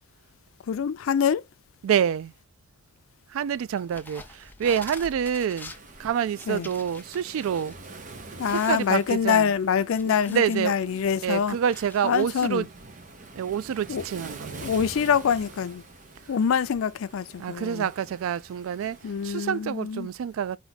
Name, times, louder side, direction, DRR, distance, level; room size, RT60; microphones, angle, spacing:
voice 1, 0.7-1.4 6.5-6.7 8.4-11.6 12.0-12.7 13.9-14.0 14.6-15.8 16.3-17.9 19.0-20.1, left 7 dB, 85° left, 0.4 m, -25 dB
voice 2, 1.8-2.3 3.3-5.7 6.0-7.8 8.7-9.5 10.1-10.7 11.2-12.7 13.4-14.7 17.4-19.0 19.2-20.6, right 8 dB, 80° right, 0.3 m, -27 dB
sound 1, 3.8-7.7 8.1-8.2 8.5-10.6 11.1-12.5, left 3 dB, 10° left, 0.5 m, -46 dB
Waves surf, 5.6-19.2, right 3 dB, 40° right, 0.8 m, -46 dB
4.6 x 2.6 x 3.9 m
head